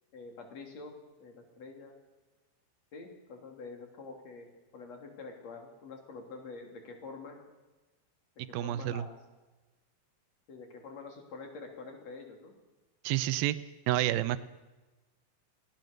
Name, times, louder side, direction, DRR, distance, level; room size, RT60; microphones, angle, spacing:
voice 1, 0.1-0.9 1.2-1.9 2.9-7.4 8.6-9.2 10.5-12.5, left 4 dB, 40° left, 3 dB, 3.8 m, -46 dB
voice 2, 8.5-9.1 13.0-13.6 13.9-14.4, right 14 dB, 80° right, 14 dB, 2.2 m, -29 dB
23.0 x 17.5 x 6.7 m, 1.1 s
omnidirectional pair, 5.0 m